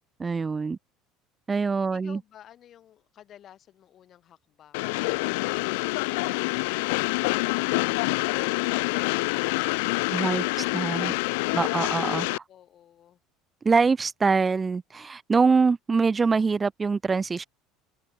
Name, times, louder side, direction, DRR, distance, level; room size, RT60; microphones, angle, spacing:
voice 1, 0.2-0.8 1.5-2.2 8.9-9.1 10.1-10.4 10.7-11.1 11.5-12.4 13.6-17.5, right 4 dB, 25° right, 0.5 m, -24 dB
voice 2, 1.9-9.1 12.5-13.2, left 11 dB, 50° left, 6.0 m, -52 dB
Train, 4.7-12.4, left 26 dB, 80° left, 0.5 m, -26 dB
supercardioid pair, 90°, 0 cm